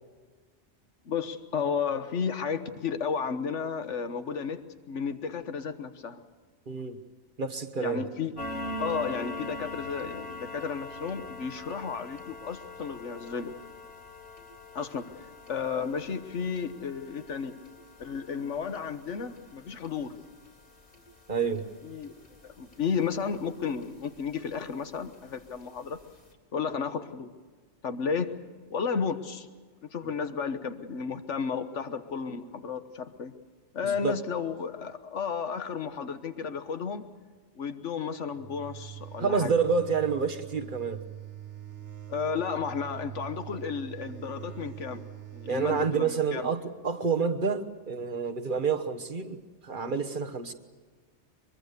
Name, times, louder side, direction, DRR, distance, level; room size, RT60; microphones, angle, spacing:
voice 1, 1.1-4.6 4.9-6.2 7.8-8.3 8.8-13.5 14.7-15.0 15.5-17.6 18.0-20.2 21.8-22.1 22.4-26.0 26.5-27.3 27.8-28.4 28.7-29.5 29.9-33.3 33.7-37.1 37.5-39.5 42.1-45.0 45.3-46.5, left 6 dB, 80° left, 9 dB, 1.6 m, -33 dB
voice 2, 6.7-7.0 7.4-8.0 21.3-21.6 33.8-34.2 39.2-41.0 45.5-50.5, right 5 dB, 45° right, 7 dB, 1.4 m, -28 dB
sound 1, 8.4-23.5 23.8-24.1 24.5-24.6 25.0-25.1 25.6-25.7 26.0-26.1, left 1 dB, 50° left, 3.8 m, -43 dB
sound 2, 38.3-46.0, right 12 dB, 75° right, 1.7 m, -43 dB
23.0 x 23.0 x 6.8 m, 1.5 s
omnidirectional pair, 1.2 m